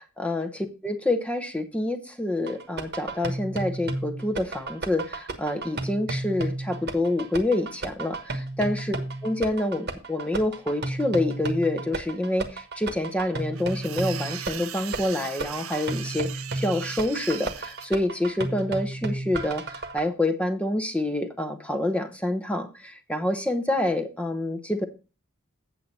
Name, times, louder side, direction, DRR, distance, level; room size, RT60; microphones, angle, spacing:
voice 1, 0.2-8.8 9.2-24.8, left 1 dB, 5° left, 8 dB, 0.8 m, -27 dB
sound 1, 2.5-20.0, right 2 dB, 50° right, 1.3 m, -33 dB
sound 2, 13.6-17.9, right 11 dB, 75° right, 0.6 m, -38 dB
8.4 x 7.3 x 4.1 m, 0.32 s
head